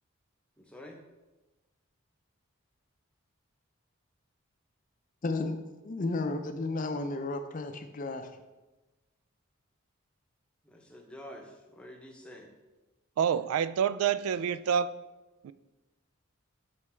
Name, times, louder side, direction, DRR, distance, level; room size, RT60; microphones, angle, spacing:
voice 1, 0.6-1.0 10.6-12.5, left 1 dB, 5° left, 1 dB, 0.8 m, -48 dB
voice 2, 5.2-5.6 5.8-8.3, left 2 dB, 40° left, 8 dB, 0.5 m, -33 dB
voice 3, 13.2-14.9 15.4-15.5, right 8 dB, 90° right, 15 dB, 0.3 m, -27 dB
8.2 x 4.3 x 4.3 m, 1.1 s
head